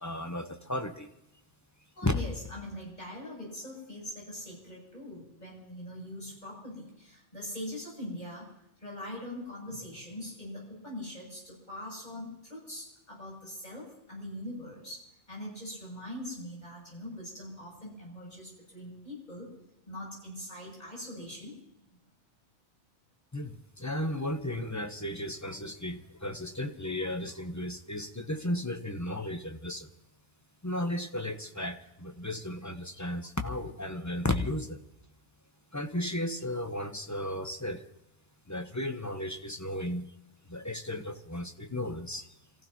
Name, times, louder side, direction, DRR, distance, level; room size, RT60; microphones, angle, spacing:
voice 1, 0.0-1.1 2.0-2.2 23.3-29.9 30.6-34.8 35.7-37.8 38.5-40.1 40.5-42.2, left 1 dB, 15° left, 6 dB, 0.9 m, -34 dB
voice 2, 2.0-8.5 8.8-19.5 19.9-21.5, left 1 dB, 40° left, -3 dB, 8.3 m, -42 dB
28.0 x 15.5 x 3.0 m, 0.89 s
omnidirectional pair, 1.2 m